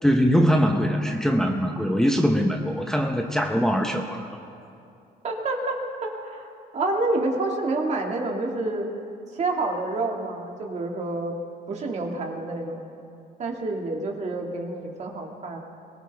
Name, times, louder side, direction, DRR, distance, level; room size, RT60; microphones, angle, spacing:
voice 1, 0.0-4.3, equal, 5° left, 2 dB, 1.0 m, -22 dB
voice 2, 5.2-6.5 6.7-8.9 9.3-11.4 11.7-12.8 13.4-15.6, right 2 dB, 40° right, 1 dB, 2.2 m, -28 dB
22.0 x 18.5 x 3.5 m, 2.6 s
cardioid pair, 110°, 17 cm